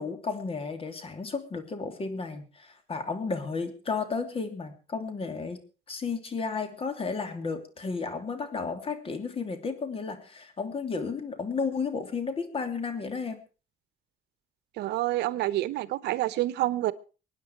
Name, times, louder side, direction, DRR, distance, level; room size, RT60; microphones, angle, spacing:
voice 1, 0.0-5.6 5.9-13.4, left 4 dB, 35° left, 3.0 m, -33 dB
voice 2, 14.8-16.9, right 16 dB, 80° right, 0.9 m, -28 dB
24.0 x 9.7 x 4.6 m
cardioid pair, 110°, 17 cm